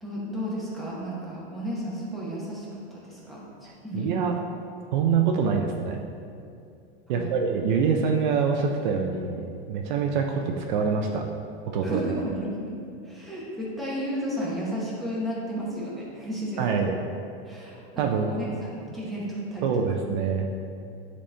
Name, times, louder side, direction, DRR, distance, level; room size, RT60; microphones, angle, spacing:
voice 1, 0.0-3.4 3.8-4.1 7.1-7.4 11.8-12.7 13.0-16.9 17.4-19.7, equal, ahead, -7 dB, 0.9 m, -33 dB
voice 2, 3.9-4.3 4.9-6.0 7.1-11.2 11.7-12.0 16.6-16.9 17.9-18.5 19.6-20.5, right 6 dB, 50° right, 2 dB, 0.5 m, -25 dB
10.0 x 4.2 x 3.3 m, 2.5 s
supercardioid pair, 175°, 31 cm